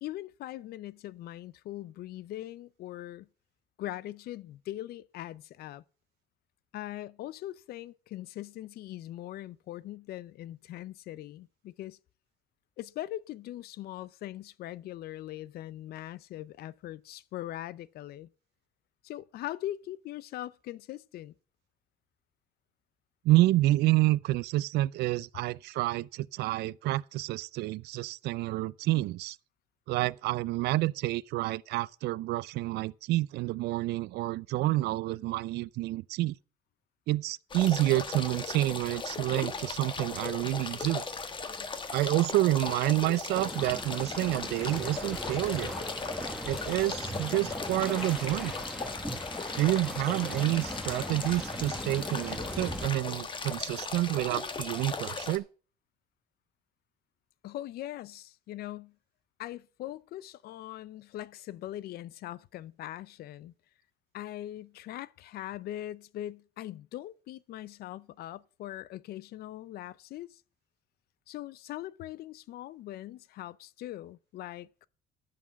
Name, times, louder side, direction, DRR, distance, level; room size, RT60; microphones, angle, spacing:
voice 1, 0.0-3.3 3.8-5.8 6.7-12.0 12.8-18.3 19.0-21.3 57.4-58.9 59.4-63.5 64.1-70.4 71.3-74.9, left 14 dB, 70° left, 0.6 m, -41 dB
voice 2, 23.2-29.4 29.9-36.4 37.1-41.0 41.9-45.8 46.4-48.5 49.6-55.4, right 17 dB, 75° right, 0.4 m, -28 dB
sound 1, 37.5-55.4, left 4 dB, 30° left, 1.3 m, -37 dB
sound 2, 43.3-52.9, right 1 dB, ahead, 1.1 m, -40 dB
11.0 x 5.9 x 7.3 m
cardioid pair, 110°, 17 cm